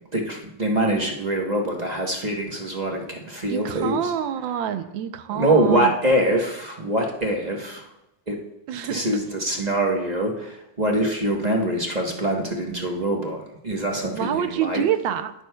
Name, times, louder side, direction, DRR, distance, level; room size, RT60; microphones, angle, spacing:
voice 1, 0.1-4.1 5.3-7.9 8.3-8.4 8.8-13.4 13.6-14.8, right 1 dB, 30° right, 0 dB, 0.9 m, -24 dB
voice 2, 3.5-5.9 8.7-9.1 14.1-15.3, right 9 dB, 90° right, 10 dB, 1.4 m, -27 dB
18.5 x 6.3 x 2.3 m, 0.85 s
omnidirectional pair, 2.0 m